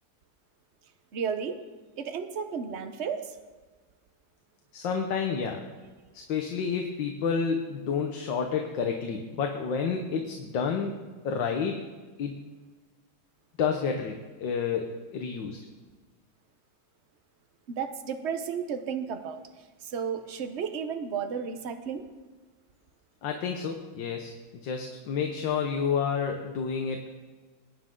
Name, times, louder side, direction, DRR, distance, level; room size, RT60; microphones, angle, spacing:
voice 1, 1.1-1.6 2.0-3.4 17.7-19.4 19.8-22.0, right 6 dB, 50° right, 8 dB, 0.8 m, -33 dB
voice 2, 4.7-5.6 6.1-10.9 11.2-11.8 12.2-12.4 13.6-15.6 23.2-27.2, left 6 dB, 65° left, 3 dB, 1.6 m, -30 dB
21.0 x 9.8 x 3.8 m, 1.3 s
omnidirectional pair, 2.2 m